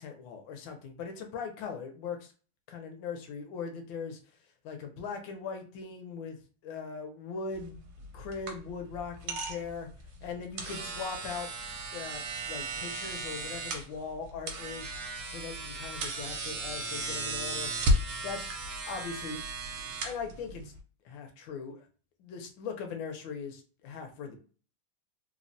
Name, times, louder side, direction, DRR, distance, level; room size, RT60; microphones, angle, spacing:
voice 1, 0.0-2.3 2.7-4.2 4.6-6.4 6.6-7.8 8.1-9.9 10.2-11.5 11.9-14.9 15.3-17.7 18.2-18.5 18.9-19.4 20.0-20.7 21.0-21.9 22.2-24.4, left 5 dB, 75° left, 4 dB, 1.3 m, -40 dB
sound 1, 7.5-20.8, right 1 dB, 70° right, 0.9 m, -35 dB
3.4 x 2.0 x 2.5 m, 0.38 s
omnidirectional pair, 2.2 m